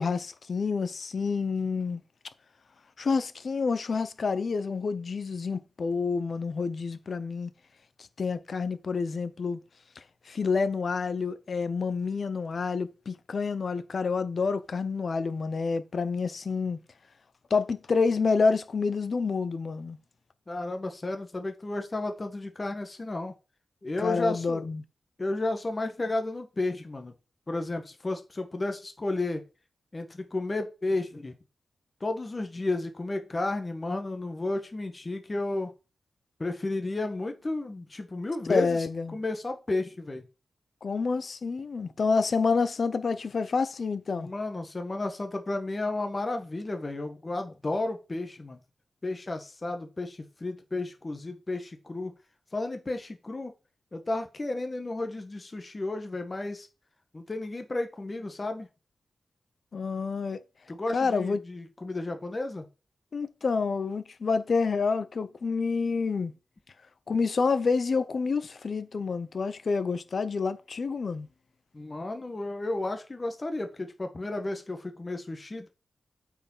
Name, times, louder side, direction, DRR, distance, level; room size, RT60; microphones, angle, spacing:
voice 1, 0.0-2.0 3.0-7.5 8.0-9.6 10.0-16.8 17.5-20.0 24.0-24.8 38.5-39.2 40.8-44.3 59.7-60.4 60.9-61.4 63.1-66.3 67.1-71.3, left 4 dB, 55° left, 0.9 m, -28 dB
voice 2, 20.5-23.3 23.8-24.6 25.2-27.1 27.5-29.4 29.9-31.3 32.0-35.7 36.4-38.8 39.1-40.2 44.1-48.6 49.0-52.1 52.5-53.5 53.9-56.7 57.1-58.7 60.7-62.7 71.7-75.7, left 2 dB, 30° left, 1.4 m, -32 dB
8.6 x 4.9 x 5.6 m
wide cardioid pair, 100°, 0 cm